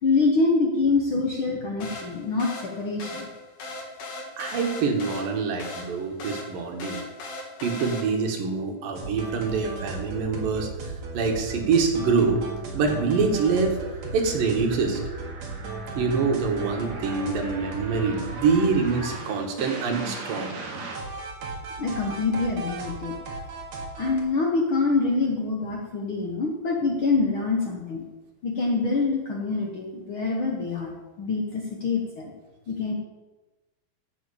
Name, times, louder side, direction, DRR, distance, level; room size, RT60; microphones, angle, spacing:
voice 1, 0.0-3.3 21.8-23.1 24.0-28.0 28.4-30.9 31.2-32.3 32.7-32.9, left 3 dB, 65° left, 0 dB, 1.3 m, -25 dB
sound 1, 1.8-8.4, left 2 dB, 90° left, 4.0 m, -38 dB
voice 2, 4.4-7.0 7.6-10.7 11.1-12.4 12.7-13.8 14.1-15.0 16.0-20.5, right 4 dB, 75° right, 3 dB, 3.1 m, -25 dB
sound 2, 9.0-24.2, right 3 dB, 55° right, 2.9 m, -36 dB
12.0 x 5.7 x 8.5 m, 1.2 s
omnidirectional pair, 4.1 m